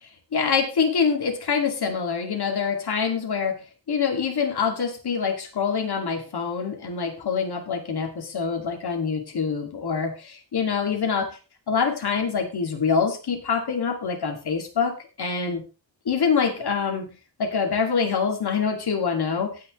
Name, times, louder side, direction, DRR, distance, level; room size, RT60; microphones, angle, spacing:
voice 1, 0.3-11.4 11.7-15.6 16.1-19.6, left 6 dB, 60° left, 2 dB, 2.4 m, -25 dB
18.0 x 6.6 x 3.1 m, 0.31 s
wide cardioid pair, 160°, 43 cm